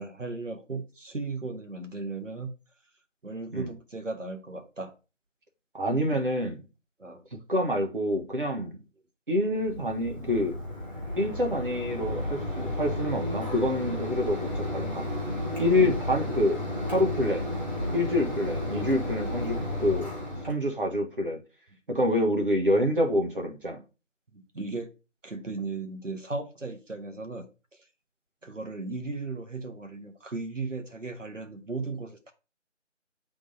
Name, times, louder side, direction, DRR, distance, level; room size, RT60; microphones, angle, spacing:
voice 1, 0.0-2.5 3.2-4.9 7.0-7.2 15.8-16.0 24.3-24.9 25.2-27.5 28.4-32.3, right 3 dB, 80° right, 1.5 m, -36 dB
voice 2, 5.7-6.6 7.5-8.8 9.3-10.6 11.2-15.1 15.6-16.6 16.9-17.5 17.9-20.1 20.5-21.4 21.9-23.8, left 1 dB, 45° right, 1.4 m, -27 dB
Mechanisms, 9.5-20.5, left 1 dB, 10° left, 2.1 m, -33 dB
7.9 x 3.8 x 4.0 m
figure-of-eight pair, 165°, 37 cm